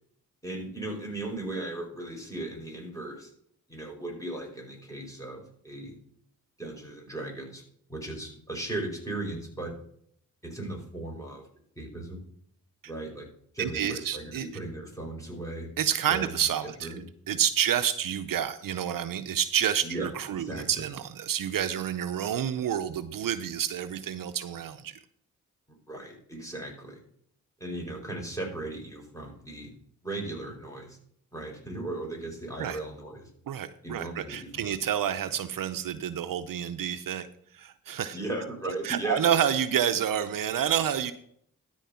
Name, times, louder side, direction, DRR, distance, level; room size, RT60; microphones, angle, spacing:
voice 1, 0.4-3.3 3.7-6.0 6.6-7.6 7.9-9.7 10.4-11.5 11.8-12.3 12.8-13.3 13.5-15.7 16.1-16.4 16.8-17.0 19.8-20.9 25.9-27.0 27.6-29.7 30.0-31.0 31.3-33.3 33.8-34.8 38.1-39.2, right 2 dB, 10° left, 0 dB, 5.0 m, -37 dB
voice 2, 13.6-14.5 15.8-16.9 17.3-25.0 32.6-32.8 33.5-37.3 37.5-38.2 38.8-41.1, right 9 dB, 70° right, 11 dB, 0.7 m, -29 dB
13.0 x 4.6 x 5.7 m, 0.66 s
supercardioid pair, 45°, 35 cm